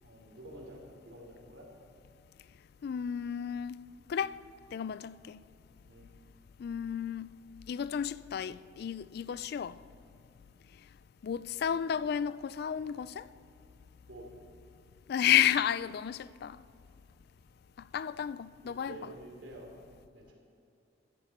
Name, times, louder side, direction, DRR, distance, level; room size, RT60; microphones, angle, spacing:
voice 1, 0.0-1.7 5.9-6.1 14.1-14.3 18.6-19.7 20.1-20.3, right 1 dB, 70° right, 3.2 m, -49 dB
voice 2, 2.8-3.8 4.1-4.4 4.7-5.4 6.6-7.3 7.7-9.8 11.2-13.3 15.1-16.6 17.9-19.0, left 9 dB, 55° left, 0.3 m, -32 dB
16.5 x 14.0 x 4.3 m
head